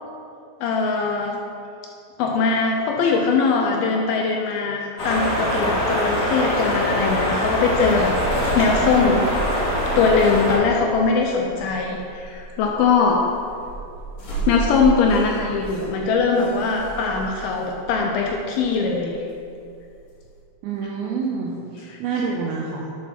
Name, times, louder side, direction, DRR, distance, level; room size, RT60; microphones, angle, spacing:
voice 1, 0.6-1.4 2.2-9.2 10.0-13.3 14.5-19.2 21.9-22.0, left 4 dB, 80° left, 0 dB, 2.3 m, -21 dB
sound 1, 5.0-10.6, equal, 40° left, 1.6 m, -23 dB
sound 2, 8.0-20.4, right 4 dB, 55° left, 3.3 m, -34 dB
voice 2, 20.6-22.9, right 5 dB, 80° right, -2 dB, 2.5 m, -27 dB
8.3 x 4.3 x 5.8 m, 2.5 s
omnidirectional pair, 4.7 m